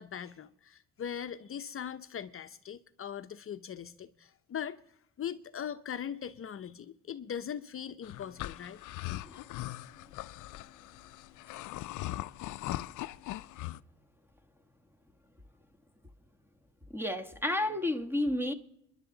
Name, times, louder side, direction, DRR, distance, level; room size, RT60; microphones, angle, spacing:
voice 1, 0.0-4.8 5.2-8.8, left 8 dB, 45° left, 0.7 m, -40 dB
sound 1, 8.0-13.8, left 16 dB, 80° left, 0.5 m, -40 dB
voice 2, 16.9-18.5, left 1 dB, 5° right, 1.5 m, -31 dB
27.0 x 11.0 x 3.9 m
cardioid pair, 90°, 30 cm